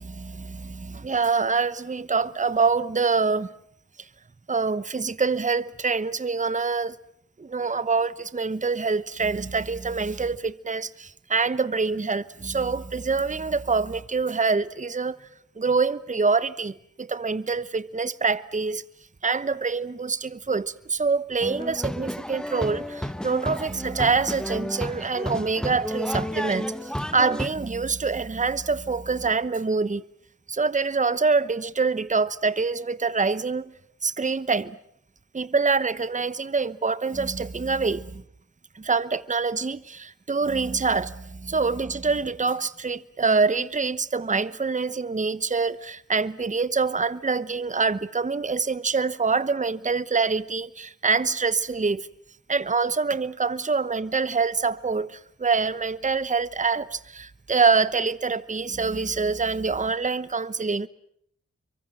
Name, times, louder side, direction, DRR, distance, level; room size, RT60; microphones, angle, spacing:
voice 1, 0.0-3.5 4.5-7.0 7.4-15.3 15.6-18.8 19.2-30.0 30.5-33.7 34.0-34.8 35.3-38.2 38.7-52.1 52.5-60.9, right 4 dB, 25° right, 0.9 m, -25 dB
sound 1, 21.4-27.5, equal, 5° left, 1.5 m, -32 dB
26.5 x 23.5 x 7.8 m
cardioid pair, 45°, 29 cm